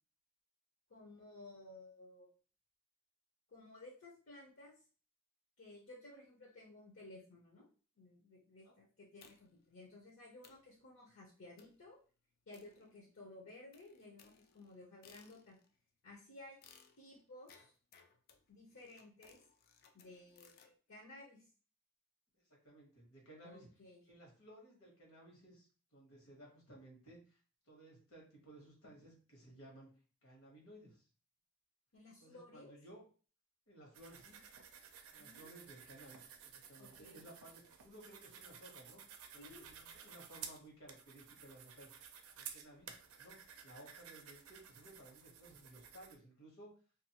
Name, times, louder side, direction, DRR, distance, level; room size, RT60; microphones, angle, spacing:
voice 1, 0.9-2.3 3.5-4.8 5.6-7.6 8.0-12.0 12.5-15.6 16.0-16.6 17.0-17.7 18.5-19.4 19.9-21.5 23.4-24.0 31.9-32.8 35.2-35.6 36.8-37.2 39.4-39.7, left 2 dB, 65° left, -2 dB, 0.7 m, -56 dB
sound 1, 9.2-9.7 10.1-10.2 10.4-10.7 11.6-11.9 12.5-13.3 13.7-15.7 16.6-20.7, left 6 dB, 45° left, 0.3 m, -65 dB
voice 2, 22.5-23.7 24.0-27.4 27.6-29.9 30.2-31.1 32.2-33.0 33.7-34.4 35.1-39.0 39.3-41.9 42.4-46.7, right 1 dB, 80° left, -2 dB, 1.2 m, -58 dB
sound 2, 33.9-46.2, right 7 dB, 80° right, 0.4 m, -54 dB
2.5 x 2.4 x 2.8 m, 0.39 s
head